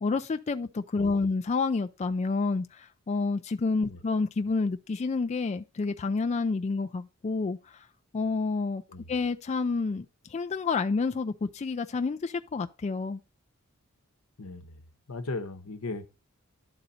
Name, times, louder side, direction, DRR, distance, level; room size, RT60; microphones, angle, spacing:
voice 1, 0.0-7.9 8.1-8.8 9.1-13.2, left 4 dB, 30° left, 0.4 m, -29 dB
voice 2, 14.4-14.8 15.1-16.1, left 3 dB, 75° left, 0.9 m, -37 dB
11.5 x 4.0 x 4.1 m
head